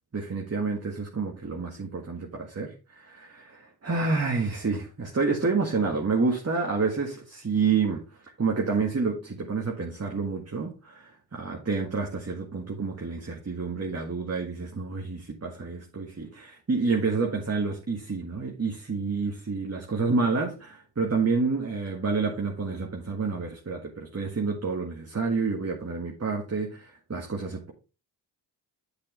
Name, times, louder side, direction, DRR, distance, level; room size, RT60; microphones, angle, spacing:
voice 1, 0.1-8.1 8.4-27.7, right 4 dB, 35° right, 1.8 m, -29 dB
7.8 x 6.8 x 3.3 m
cardioid pair, 45°, 45 cm